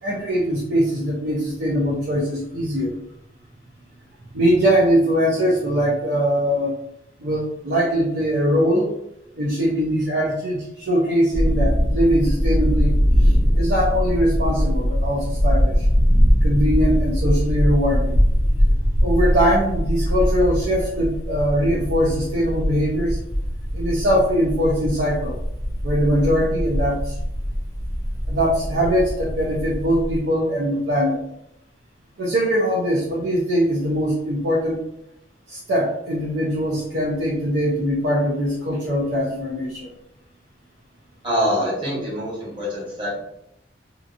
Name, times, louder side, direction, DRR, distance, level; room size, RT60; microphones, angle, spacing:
voice 1, 0.0-2.9 4.3-6.7 7.2-8.9 9.4-12.9 13.2-15.9 16.4-18.2 19.0-23.2 23.7-25.3 25.8-27.2 28.3-31.2 32.2-34.8 35.5-39.9, equal, 75° right, -4 dB, 0.6 m, -21 dB
sound 1, 11.3-30.2, equal, 20° left, 0.4 m, -21 dB
voice 2, 41.2-43.1, equal, 30° right, -7 dB, 1.2 m, -24 dB
2.8 x 2.5 x 2.5 m, 0.80 s
head